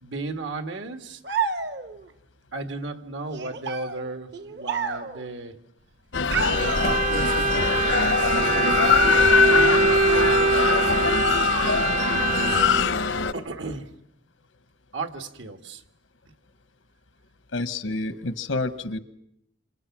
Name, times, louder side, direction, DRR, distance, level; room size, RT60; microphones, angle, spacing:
voice 1, 0.0-1.2 2.5-5.6 6.4-10.6 12.1-13.0 13.3-13.9 14.9-15.8, right 3 dB, 75° right, 7 dB, 1.9 m, -35 dB
sound 1, 1.2-2.1 3.3-5.3 6.3-7.4, right 6 dB, 60° right, 1.3 m, -31 dB
sound 2, 6.1-13.3, left 5 dB, 75° left, 0.9 m, -22 dB
Bowed string instrument, 6.3-12.9, right 4 dB, 40° right, 1.1 m, -24 dB
voice 2, 17.5-19.0, left 2 dB, 90° left, 12 dB, 1.3 m, -29 dB
28.0 x 27.0 x 6.1 m, 0.75 s
head